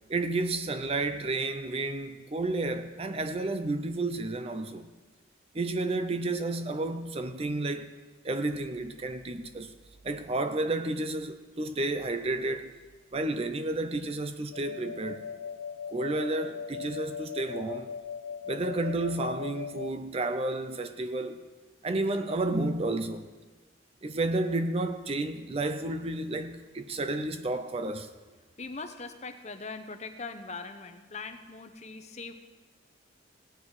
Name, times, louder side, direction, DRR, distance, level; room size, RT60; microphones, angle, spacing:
voice 1, 0.1-4.9 5.5-7.9 8.2-9.7 10.0-12.7 13.1-15.2 15.9-17.9 18.5-21.4 21.8-23.3 24.0-28.1, right 2 dB, 30° right, 0.5 m, -31 dB
sound 1, 14.5-19.9, left 7 dB, 90° left, 0.3 m, -39 dB
voice 2, 28.6-32.3, left 4 dB, 35° left, 0.8 m, -41 dB
17.0 x 9.7 x 4.8 m
head